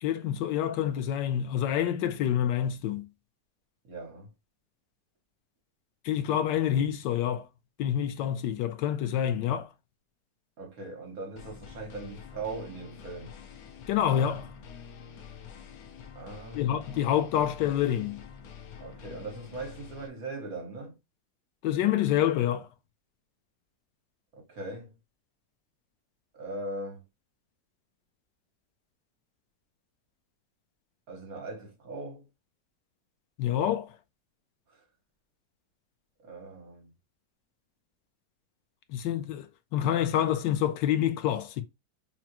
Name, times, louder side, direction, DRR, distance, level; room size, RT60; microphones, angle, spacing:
voice 1, 0.0-3.1 6.0-7.5 7.8-9.7 13.9-14.6 16.5-18.2 21.6-22.7 33.4-33.9 38.9-39.4 39.7-41.6, left 10 dB, 85° left, 1.3 m, -27 dB
voice 2, 3.8-4.3 10.6-13.4 16.1-16.9 18.8-21.0 24.4-24.9 26.3-27.0 31.1-32.3 34.7-34.8 36.2-36.9, right 2 dB, 60° right, 1.6 m, -40 dB
sound 1, 11.4-20.1, left 7 dB, 65° left, 1.1 m, -47 dB
5.9 x 2.1 x 2.8 m
omnidirectional pair, 1.8 m